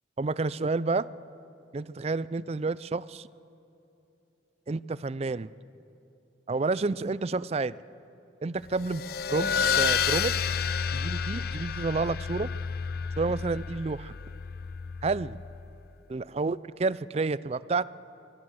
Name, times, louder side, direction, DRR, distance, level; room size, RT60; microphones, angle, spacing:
voice 1, 0.2-1.1 1.7-3.3 4.7-5.5 6.5-7.7 8.4-9.0 9.3-9.5 9.8-10.3 10.9-12.5 13.2-14.2 15.0-15.4 16.1-17.9, right 3 dB, 35° right, 19 dB, 0.4 m, -29 dB
sound 1, 8.7-15.8, left 7 dB, 55° left, 0.6 m, -30 dB
24.0 x 17.5 x 7.8 m, 2.9 s
head